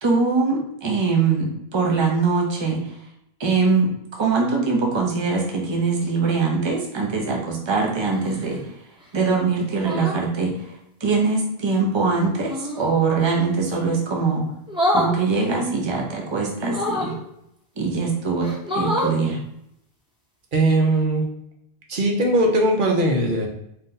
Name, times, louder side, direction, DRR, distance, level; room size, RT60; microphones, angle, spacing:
voice 1, 0.0-2.8 3.4-8.6 9.1-10.7 11.0-14.5 14.9-17.1 17.8-19.4, right 4 dB, 30° right, 0 dB, 0.8 m, -22 dB
sound 1, 8.1-8.6 9.8-10.2 12.4-12.9 14.7-15.1 16.6-17.2 17.9-18.0 18.4-19.2 20.8-21.0, left 1 dB, 5° right, 1.0 m, -25 dB
voice 2, 20.5-21.3 21.9-23.5, right 1 dB, 55° right, 0 dB, 1.0 m, -19 dB
3.9 x 2.7 x 3.9 m, 0.78 s
omnidirectional pair, 1.0 m